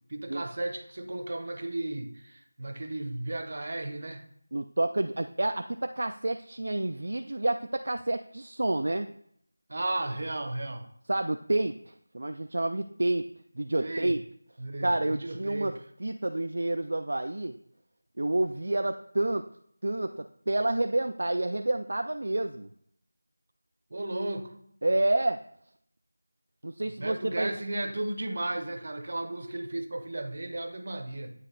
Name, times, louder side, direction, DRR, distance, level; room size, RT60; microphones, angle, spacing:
voice 1, 0.1-4.2 9.7-10.8 13.8-14.2 14.6-15.7 23.9-24.5 26.9-31.3, right 2 dB, 45° right, 7 dB, 0.7 m, -34 dB
voice 2, 4.5-9.1 11.1-13.3 13.6-14.2 14.8-17.5 18.2-19.5 19.8-22.7 24.8-25.4 26.6-27.5, right 2 dB, 60° right, 7 dB, 0.3 m, -29 dB
9.1 x 3.2 x 3.9 m, 0.69 s
figure-of-eight pair, 175°, 0 cm